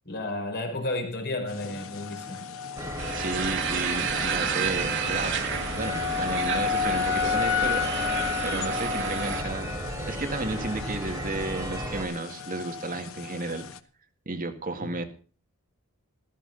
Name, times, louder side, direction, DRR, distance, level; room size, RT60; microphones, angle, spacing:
voice 1, 0.0-2.4 14.8-14.9, left 2 dB, 50° left, 5.0 m, -32 dB
sound 1, 1.5-13.8, left 8 dB, 70° left, 1.1 m, -33 dB
sound 2, 2.8-12.1, right 1 dB, 15° right, 3.7 m, -35 dB
sound 3, 3.0-9.4, right 7 dB, 60° right, 1.9 m, -31 dB
voice 2, 3.1-5.4 5.7-7.9 8.4-9.7 10.1-13.6 14.3-15.0, right 2 dB, 40° right, 2.0 m, -33 dB
15.5 x 14.0 x 4.0 m
head